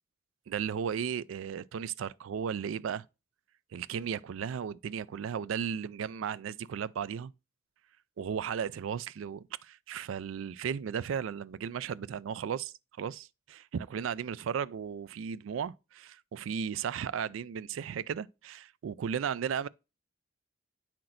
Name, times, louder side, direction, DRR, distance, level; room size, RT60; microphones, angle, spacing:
voice 1, 0.5-3.1 3.7-7.3 8.2-19.7, right 7 dB, 90° right, 0.3 m, -35 dB
8.6 x 5.9 x 2.6 m
head